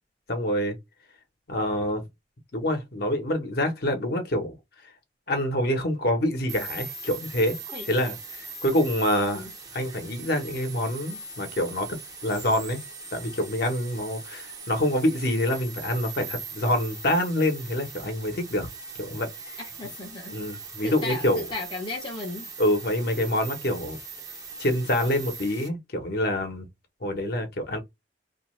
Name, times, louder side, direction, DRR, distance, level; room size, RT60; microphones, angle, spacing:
voice 1, 0.3-0.8 1.5-2.0 2.5-4.5 5.3-7.6 7.9-9.5 9.7-11.9 12.2-12.8 13.1-18.7 19.0-19.3 20.3-21.4 22.6-24.0 24.6-26.7 27.0-27.8, left 1 dB, 60° left, 0.8 m, -26 dB
sound 1, 6.5-25.7, right 4 dB, 20° right, 0.6 m, -41 dB
voice 2, 19.6-20.4 20.8-22.5, left 2 dB, 30° left, 0.6 m, -35 dB
2.5 x 2.2 x 3.0 m
head